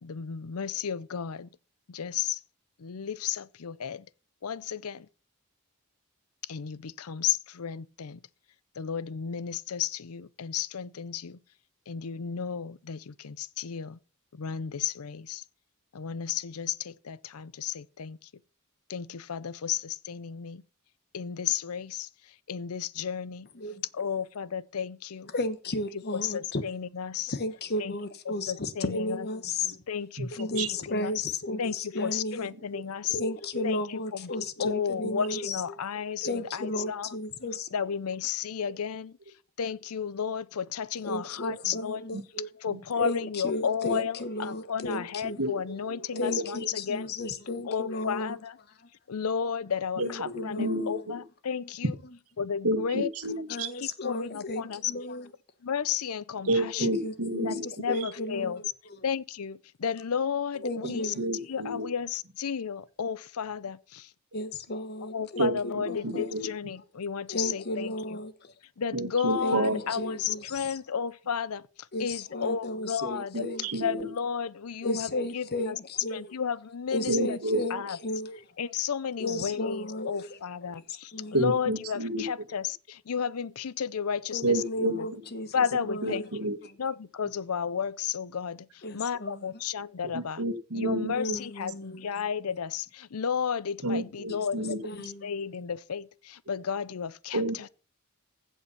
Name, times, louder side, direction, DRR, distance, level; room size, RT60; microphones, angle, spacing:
voice 1, 0.0-1.5 1.9-2.4 2.8-4.1 4.4-5.1 6.5-8.2 8.8-11.4 11.9-14.0 14.3-15.4 15.9-18.3 18.9-20.6 21.1-23.5 23.9-25.3 26.1-27.3 27.8-27.9 28.3-29.3 29.9-31.1 31.6-33.2 33.6-34.3 34.6-37.2 37.7-39.2 39.6-42.0 42.6-47.1 47.7-48.6 49.1-52.0 52.4-53.1 53.7-54.9 55.6-56.9 57.4-58.6 59.0-61.1 61.5-64.1 65.1-68.2 68.8-71.6 72.0-73.4 73.8-75.8 76.1-77.4 77.7-78.0 78.6-84.6 84.9-85.1 85.5-86.3 86.8-90.4 90.7-97.7, left 7 dB, 75° left, 0.6 m, -33 dB
voice 2, 25.3-26.6 27.3-29.8 30.3-32.5 33.1-35.6 36.2-37.7 41.0-42.5 42.9-48.4 50.0-51.0 53.5-55.3 56.7-58.6 60.6-61.2 64.3-66.3 67.3-68.5 69.4-70.8 71.9-74.1 74.8-76.3 76.9-78.4 79.2-80.4 81.1-81.4 84.3-86.3 86.6-86.7 88.8-89.5 91.1-92.1 94.3-95.3, left 1 dB, 45° left, 1.1 m, -34 dB
voice 3, 46.1-46.7 50.0-50.9 52.6-53.7 56.4-57.6 60.8-61.9 65.4-66.5 68.9-69.8 73.0-74.1 77.1-77.6 81.3-82.2 84.4-85.0 86.0-86.6 90.1-91.4 93.8-94.8 97.3-97.7, right 1 dB, 75° right, 1.6 m, -30 dB
15.5 x 5.6 x 5.8 m
head